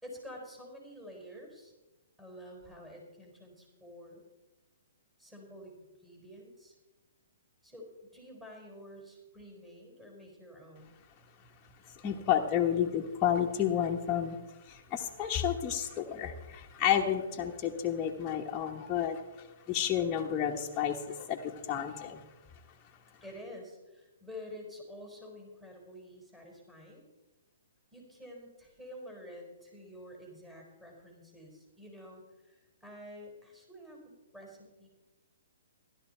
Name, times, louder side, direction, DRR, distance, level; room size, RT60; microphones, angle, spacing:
voice 1, 0.0-1.7 2.2-4.2 5.2-6.7 7.6-11.0 23.2-27.0 27.9-34.0 34.3-34.9, left 1 dB, 10° right, -1 dB, 4.8 m, -49 dB
voice 2, 11.8-23.2, left 9 dB, 20° left, -2 dB, 1.3 m, -31 dB
15.5 x 12.0 x 4.5 m, 1.1 s
hypercardioid pair, 130°, 0 cm